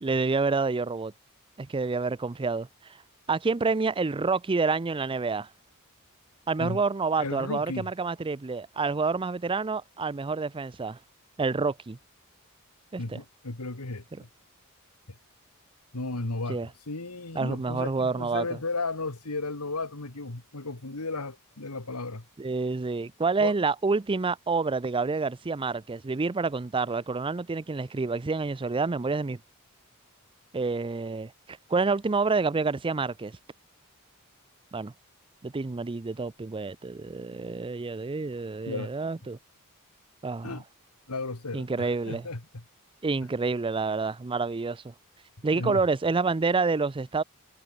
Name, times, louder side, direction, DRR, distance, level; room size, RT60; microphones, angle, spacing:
voice 1, 0.0-1.1 1.6-3.0 3.3-5.5 6.5-11.0 11.4-12.0 12.9-13.2 16.5-16.7 17.3-18.4 22.4-29.4 30.5-33.3 34.7-34.9 35.4-39.4 40.2-40.5 41.5-42.2 43.0-44.9 45.4-47.2, right 4 dB, 25° right, 0.5 m, -28 dB
voice 2, 7.2-7.9 13.0-14.3 15.1-15.2 15.9-22.2 23.4-23.6 38.7-38.9 40.4-40.6 41.1-42.6 45.5-45.8, left 3 dB, 90° left, 2.1 m, -34 dB
head